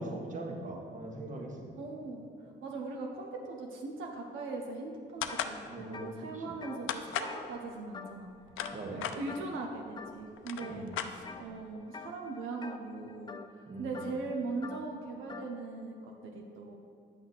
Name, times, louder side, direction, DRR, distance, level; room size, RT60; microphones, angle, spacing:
voice 1, 0.0-1.8 5.7-6.6 8.7-9.1 10.6-11.0 13.7-14.1, right 2 dB, 40° right, 1 dB, 1.3 m, -41 dB
voice 2, 1.8-2.3 2.6-8.3 8.9-13.4 13.8-16.8, right 3 dB, 85° right, 1 dB, 0.9 m, -40 dB
sound 1, 5.2-5.6 6.9-7.4 8.3-9.2 10.0-10.1 10.3-11.5, left 9 dB, 90° left, 0.5 m, -36 dB
sound 2, 5.3-5.5 5.8-8.3 8.6-9.0 9.3-9.6 10.0-10.8 11.3-11.6 11.9-15.5, left 4 dB, 25° left, 0.4 m, -47 dB
9.8 x 6.1 x 4.1 m, 2.3 s
cardioid pair, 90°, 20 cm